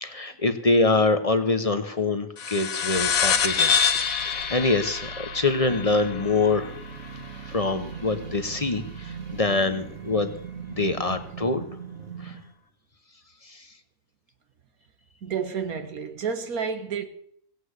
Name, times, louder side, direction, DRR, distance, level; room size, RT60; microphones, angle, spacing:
voice 1, 0.0-3.8 4.2-6.7 7.5-10.3 10.7-11.7 12.2-12.3 13.5-13.6, left 3 dB, 30° left, 1.0 m, -25 dB
sound 1, 2.4-7.3, left 7 dB, 75° left, 1.5 m, -26 dB
sound 2, 3.0-11.4, right 9 dB, 40° right, 1.0 m, -44 dB
sound 3, 5.7-12.5, right 6 dB, 60° right, 1.7 m, -40 dB
voice 2, 15.2-17.1, right 6 dB, 85° right, 1.9 m, -30 dB
17.0 x 8.0 x 8.1 m
omnidirectional pair, 1.5 m